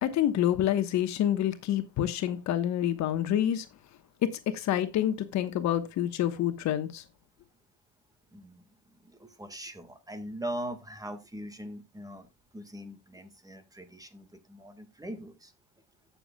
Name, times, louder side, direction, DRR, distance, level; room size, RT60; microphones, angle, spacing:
voice 1, 0.0-3.6 4.2-7.0, left 11 dB, 60° left, 1.2 m, -27 dB
voice 2, 8.3-8.6 9.0-12.3 12.5-15.5, right 1 dB, 10° right, 1.7 m, -41 dB
16.5 x 7.0 x 2.2 m
supercardioid pair, 100°, 32 cm